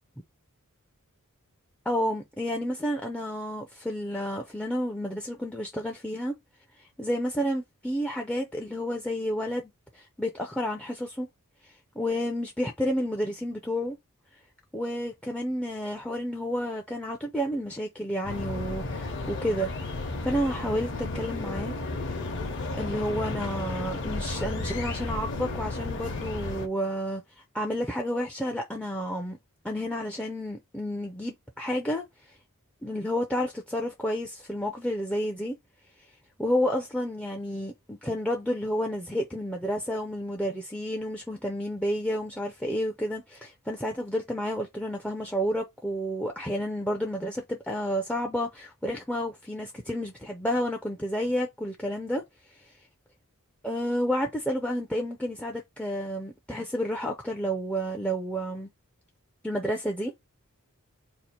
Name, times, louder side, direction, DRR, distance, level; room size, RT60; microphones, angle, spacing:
voice 1, 1.9-6.3 6.8-11.3 11.6-14.0 14.7-21.7 22.7-27.2 27.5-29.4 29.6-32.3 32.8-35.6 36.4-52.2 52.6-52.7 53.6-58.7 59.4-60.1, equal, 5° left, 0.4 m, -30 dB
sound 1, 18.2-26.7, left 2 dB, 55° left, 0.8 m, -33 dB
2.8 x 2.4 x 4.2 m
head